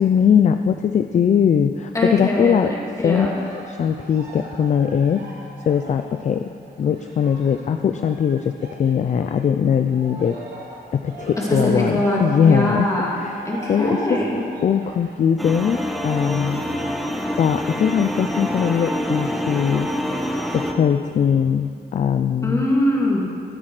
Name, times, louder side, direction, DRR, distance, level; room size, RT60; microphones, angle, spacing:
voice 1, 0.0-2.7 3.0-5.3 5.7-6.5 6.8-10.4 10.9-12.9 13.1-14.2 14.6-16.7 17.4-19.9 20.5-22.7, left 7 dB, 45° left, 8 dB, 0.4 m, -20 dB
voice 2, 1.9-3.3 11.4-14.4 22.4-23.2, left 1 dB, 20° left, -4 dB, 2.8 m, -22 dB
Cheering, 3.1-9.5 9.8-16.4 17.0-17.1, right 2 dB, 80° right, 3.2 m, -40 dB
sound 1, 15.4-20.7, equal, ahead, 1.0 m, -26 dB
16.5 x 13.0 x 4.9 m, 2.3 s
wide cardioid pair, 170°, 17 cm